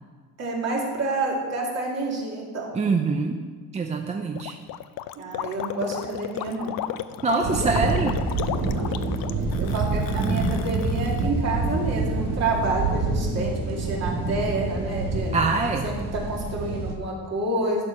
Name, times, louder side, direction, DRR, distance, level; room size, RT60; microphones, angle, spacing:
voice 1, 0.4-2.7 5.2-6.8 8.6-9.0 9.6-15.4 15.8-17.8, right 2 dB, 50° right, -3 dB, 2.7 m, -28 dB
voice 2, 2.7-3.4 3.7-4.6 7.2-8.2 15.3-15.9, right 4 dB, 20° right, 4 dB, 0.5 m, -24 dB
Gurgling, 4.4-11.3, left 12 dB, 90° left, 0.6 m, -34 dB
sound 1, 7.4-16.9, right 3 dB, 85° right, 1.8 m, -27 dB
11.5 x 6.5 x 5.9 m, 1.5 s
cardioid pair, 170°, 34 cm